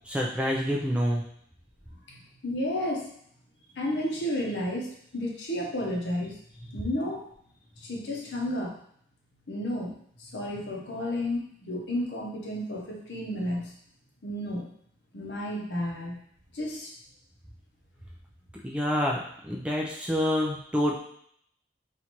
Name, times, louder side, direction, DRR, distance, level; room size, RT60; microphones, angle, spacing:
voice 1, 0.1-1.2 18.6-21.0, equal, 5° right, -2 dB, 0.4 m, -27 dB
voice 2, 2.1-3.1 3.7-4.9 5.1-6.3 6.6-7.3 7.8-8.8 9.5-13.7 14.2-14.7 15.1-16.2 16.5-16.9, left 1 dB, 80° left, -2 dB, 0.9 m, -32 dB
4.3 x 2.5 x 2.9 m, 0.66 s
head